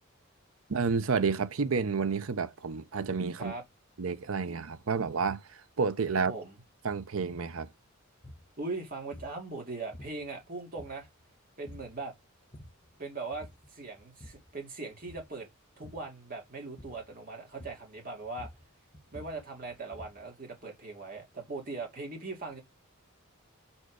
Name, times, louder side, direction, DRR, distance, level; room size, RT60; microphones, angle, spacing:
voice 1, 0.7-3.5 4.0-6.3 6.8-7.7, right 5 dB, 75° right, 0.6 m, -30 dB
voice 2, 6.1-6.6 8.6-11.1 11.6-12.1 13.0-15.5 15.8-18.5 19.1-22.6, right 3 dB, 40° right, 2.4 m, -40 dB
sound 1, 8.2-8.5 9.1-9.4 9.9-10.4 10.8-11.3 11.7-12.0 12.4-12.9 13.3-13.7 14.0-14.5 15.0-15.4 15.8-16.1 16.8-17.1 17.6-18.0 18.2-20.3, left 1 dB, 25° left, 1.0 m, -50 dB
5.5 x 4.5 x 4.7 m
head